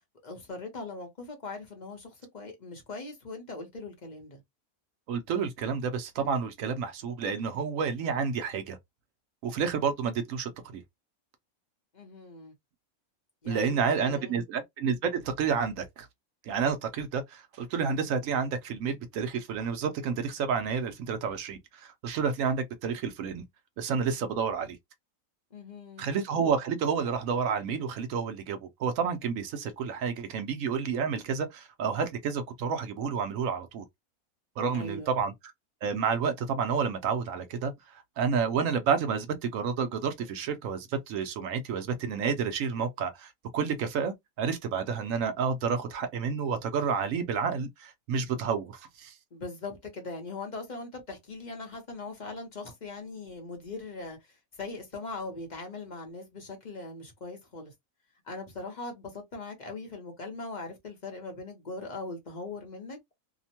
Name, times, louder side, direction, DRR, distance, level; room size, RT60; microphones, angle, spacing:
voice 1, 0.2-4.4 11.9-12.5 13.4-14.4 25.5-26.1 34.7-35.2 49.3-54.2 54.5-57.7 58.3-63.1, left 3 dB, 40° left, 0.7 m, -40 dB
voice 2, 5.1-8.8 9.4-10.8 13.5-16.1 16.5-23.4 23.8-24.8 26.0-33.8 34.6-35.3 35.8-49.1, right 6 dB, 70° right, 0.9 m, -30 dB
2.8 x 2.1 x 2.8 m
omnidirectional pair, 1.5 m